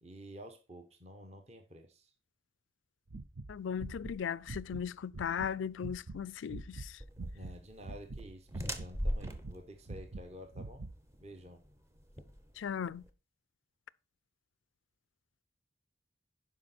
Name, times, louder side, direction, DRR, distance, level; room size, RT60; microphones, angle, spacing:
voice 1, 0.0-2.1 7.3-10.8 11.2-11.6, equal, 35° right, 1.0 m, -50 dB
sound 1, 3.1-5.5 5.8-6.2 6.5-7.6 7.8-8.9 9.2-11.0, right 2 dB, 70° right, 0.7 m, -44 dB
voice 2, 3.5-7.0 12.6-13.0, left 7 dB, 80° left, 0.4 m, -37 dB
sound 2, 7.0-13.1, equal, 15° right, 0.8 m, -41 dB
11.5 x 5.0 x 4.3 m
head